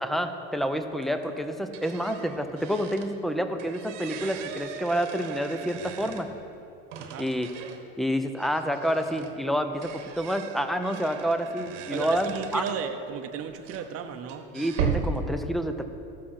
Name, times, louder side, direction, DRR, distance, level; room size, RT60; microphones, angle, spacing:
voice 1, 0.0-6.3 7.2-7.5 8.0-12.6 14.5-15.8, equal, ahead, 8 dB, 0.5 m, -28 dB
sound 1, 0.6-0.7 1.0-3.2 3.5-6.5 6.9-7.9 8.4-12.9 13.5-15.2, right 7 dB, 85° right, 1.1 m, -37 dB
voice 2, 7.0-7.3 11.9-14.5, right 7 dB, 40° right, 6 dB, 0.8 m, -34 dB
15.0 x 6.3 x 4.3 m, 2.7 s
supercardioid pair, 105°, 36 cm